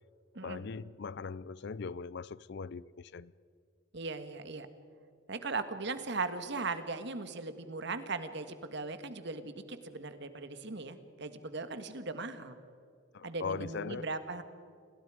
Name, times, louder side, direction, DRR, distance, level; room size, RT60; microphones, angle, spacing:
voice 1, 0.4-3.3 13.1-14.1, left 5 dB, 55° left, 0.5 m, -40 dB
voice 2, 3.9-4.7 5.3-12.6 13.2-14.4, right 3 dB, 60° right, 1.6 m, -38 dB
29.5 x 21.5 x 5.0 m
head